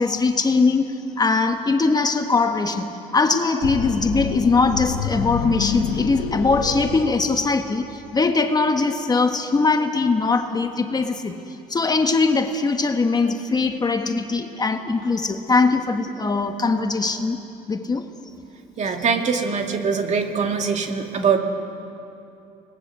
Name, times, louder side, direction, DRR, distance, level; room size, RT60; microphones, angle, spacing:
voice 1, 0.0-11.4 11.7-17.4 17.7-18.1, left 3 dB, 25° left, 6 dB, 1.4 m, -21 dB
sound 1, 3.6-7.9, left 9 dB, 85° left, 1.3 m, -28 dB
voice 2, 18.8-21.4, right 5 dB, 45° right, 4 dB, 2.4 m, -22 dB
26.0 x 20.0 x 7.6 m, 2.7 s
cardioid pair, 105°, 17 cm